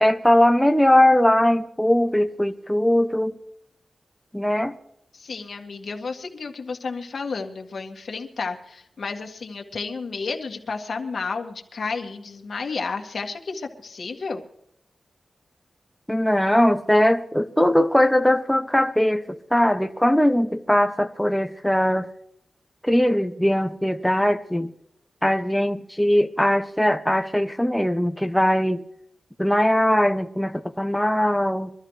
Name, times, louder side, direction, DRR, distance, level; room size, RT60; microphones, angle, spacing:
voice 1, 0.0-3.4 4.3-4.8 16.1-22.1 22.8-24.7 25.2-28.8 29.4-31.7, left 1 dB, 5° left, 0.8 m, -20 dB
voice 2, 5.1-14.4, left 4 dB, 70° left, 2.0 m, -32 dB
23.5 x 13.0 x 3.2 m
wide cardioid pair, 90°, 0 cm